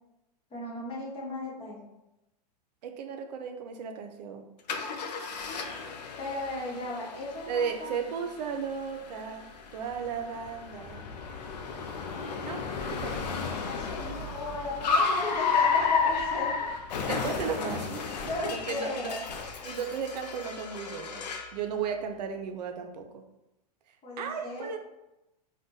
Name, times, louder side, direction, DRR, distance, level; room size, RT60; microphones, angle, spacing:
voice 1, 0.5-1.9 6.2-7.9 12.4-12.9 13.2-16.7 18.2-19.2 24.0-24.8, left 2 dB, 25° left, -5 dB, 1.0 m, -36 dB
voice 2, 2.8-4.5 7.5-11.1 12.4-12.6 12.9-13.3 17.1-19.1 19.6-21.3 21.5-23.2 23.9-24.8, right 6 dB, 80° right, 5 dB, 0.5 m, -35 dB
Car, 4.7-21.6, left 5 dB, 85° left, 0.5 m, -32 dB
2.5 x 2.2 x 3.8 m, 0.93 s
hypercardioid pair, 130°, 21 cm